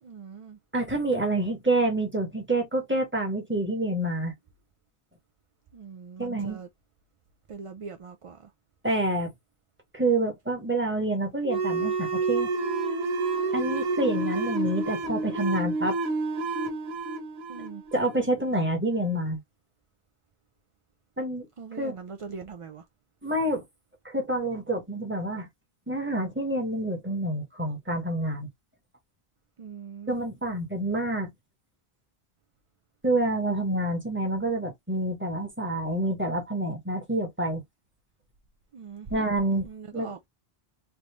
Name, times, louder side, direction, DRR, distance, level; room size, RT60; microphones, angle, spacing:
voice 1, 0.0-0.6 5.7-6.7 7.5-8.5 17.5-17.8 21.6-22.9 29.6-30.2 38.7-39.3 39.6-40.2, right 5 dB, 55° right, 0.3 m, -41 dB
voice 2, 0.7-4.3 6.2-6.6 8.8-9.3 9.9-12.5 13.5-16.0 17.9-19.4 21.2-21.5 21.8-21.9 23.2-23.6 24.0-25.5 25.9-28.5 30.1-31.3 33.0-37.6 39.1-39.7 39.9-40.1, right 1 dB, 10° right, 1.2 m, -27 dB
sound 1, 11.4-18.7, right 3 dB, 80° right, 1.0 m, -29 dB
3.4 x 2.6 x 2.9 m
omnidirectional pair, 1.1 m